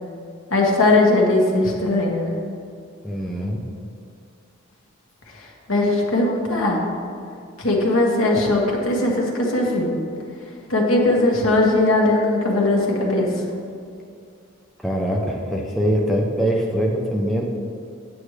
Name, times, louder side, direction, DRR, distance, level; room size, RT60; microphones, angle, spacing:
voice 1, 0.5-2.3 5.3-6.8 7.6-9.9 10.7-13.3, left 2 dB, 75° left, -1 dB, 1.5 m, -19 dB
voice 2, 3.0-3.6 14.8-17.4, equal, ahead, -2 dB, 0.6 m, -23 dB
9.2 x 8.7 x 3.2 m, 2.4 s
head